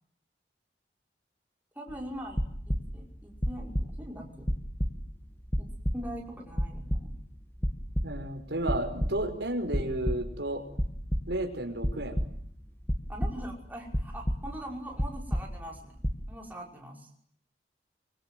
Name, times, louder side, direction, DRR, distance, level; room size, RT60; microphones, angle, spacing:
voice 1, 1.8-4.5 5.6-5.7 5.9-7.2 13.1-15.9 16.3-17.1, equal, 10° right, -1 dB, 5.6 m, -42 dB
sound 1, 1.9-3.0 3.4-4.2 4.4-6.2 6.5-7.3 7.6-8.4 8.7-9.3 9.7-10.4 10.7-11.5 11.8-12.5 12.9-13.6 13.9-14.7 15.0-15.8 16.0-16.3, equal, 15° left, 2.2 m, -31 dB
voice 2, 8.0-10.6 11.3-12.2, right 1 dB, 90° right, 5 dB, 5.5 m, -32 dB
25.0 x 24.5 x 9.4 m, 0.64 s
head